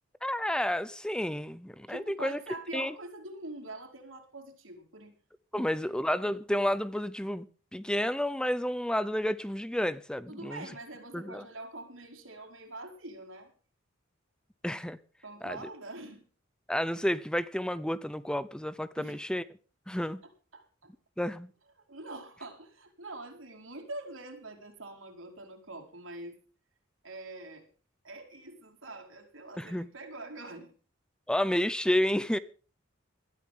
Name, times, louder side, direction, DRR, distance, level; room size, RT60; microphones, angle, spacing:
voice 1, 0.2-2.4 2.7-2.9 5.5-7.5 7.7-10.7 11.1-11.4 14.6-15.0 15.4-15.6 16.7-19.4 19.9-20.2 21.2-21.5 29.6-29.9 31.3-32.4, left 1 dB, 5° left, 0.6 m, -30 dB
voice 2, 1.9-5.1 5.5-5.9 10.3-13.5 15.2-16.2 19.0-19.2 20.5-20.9 21.9-26.4 27.0-27.7 28.0-30.7, right 2 dB, 85° right, 4.7 m, -44 dB
20.5 x 13.0 x 3.7 m
head